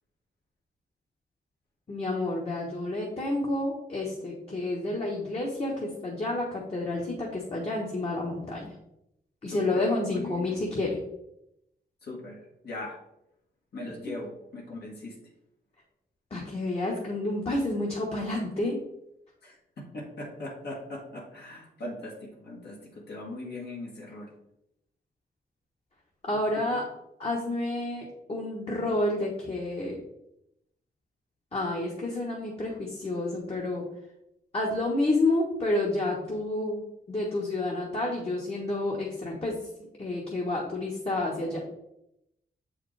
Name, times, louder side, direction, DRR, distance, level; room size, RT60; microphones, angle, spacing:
voice 1, 1.9-8.7 9.4-11.0 16.3-18.8 26.2-26.8 27.2-30.0 31.5-33.8 34.5-39.6 40.0-41.6, left 2 dB, 35° left, -2 dB, 1.1 m, -29 dB
voice 2, 9.5-9.8 10.1-10.4 12.0-12.4 12.6-13.0 13.7-15.2 19.4-24.3, left 2 dB, 70° left, -2 dB, 1.8 m, -40 dB
7.5 x 4.9 x 3.3 m, 0.81 s
wide cardioid pair, 150°, 17 cm